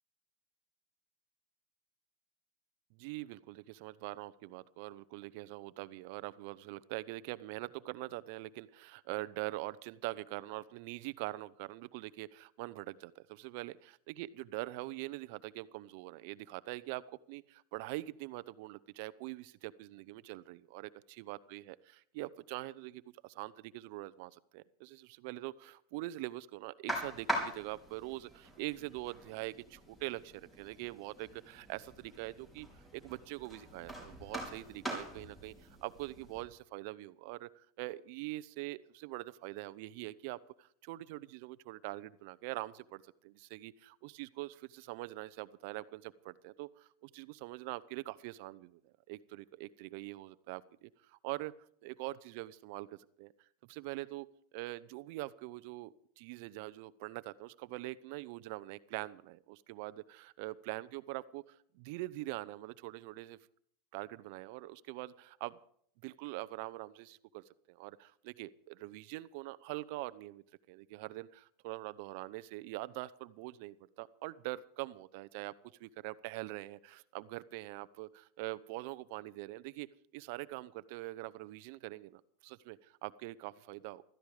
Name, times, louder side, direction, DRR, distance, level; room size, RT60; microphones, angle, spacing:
voice 1, 2.9-32.7 32.9-51.5 51.8-53.3 53.7-54.3 54.5-63.4 63.9-65.6 66.0-75.5 75.8-79.9 80.1-84.0, right 18 dB, 60° right, 16 dB, 0.8 m, -44 dB
sound 1, 26.9-36.4, right 1 dB, 10° left, 4.9 m, -43 dB
16.0 x 14.0 x 5.0 m, 0.63 s
supercardioid pair, 140°, 0 cm